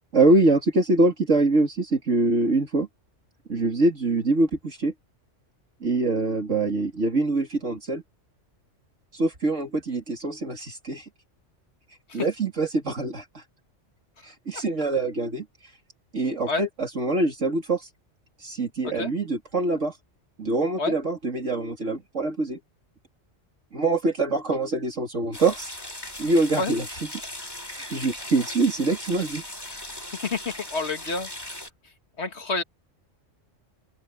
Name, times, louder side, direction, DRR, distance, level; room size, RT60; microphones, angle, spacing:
voice 1, 0.1-2.9 3.5-4.9 5.8-8.0 9.1-11.1 12.1-13.4 14.2-15.5 16.1-17.9 18.4-19.9 20.4-22.6 23.7-25.7 26.2-26.9 27.6-29.4, right 2 dB, 75° right, 3.6 m, -24 dB
sound 1, 25.3-31.7, left 1 dB, 20° left, 2.8 m, -38 dB
voice 2, 30.7-31.3 32.2-32.6, left 3 dB, 60° left, 2.1 m, -28 dB
open air
omnidirectional pair, 1.3 m